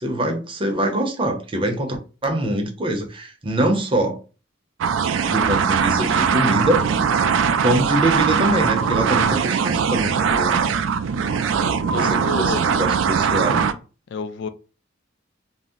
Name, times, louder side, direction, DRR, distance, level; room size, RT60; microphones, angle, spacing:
voice 1, 0.0-2.0 2.2-4.2 5.3-6.8 7.6-10.6 11.9-13.6, right 1 dB, 25° right, 0.6 m, -23 dB
sound 1, 4.8-13.7, right 6 dB, 75° right, 0.3 m, -20 dB
voice 2, 11.6-12.6 14.1-14.5, left 4 dB, 65° left, 0.3 m, -30 dB
2.6 x 2.0 x 3.6 m
head